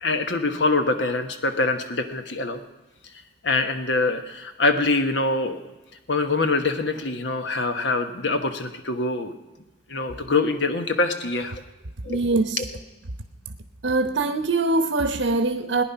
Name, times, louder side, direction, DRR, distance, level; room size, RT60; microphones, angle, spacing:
voice 1, 0.0-2.6 3.4-5.6 6.1-9.3 9.9-11.6 12.0-12.2 12.6-12.7, left 3 dB, 65° left, 7 dB, 1.2 m, -24 dB
voice 2, 12.1-12.7 13.8-15.8, right 3 dB, 70° right, 9 dB, 0.8 m, -23 dB
18.5 x 10.0 x 5.7 m, 1.1 s
head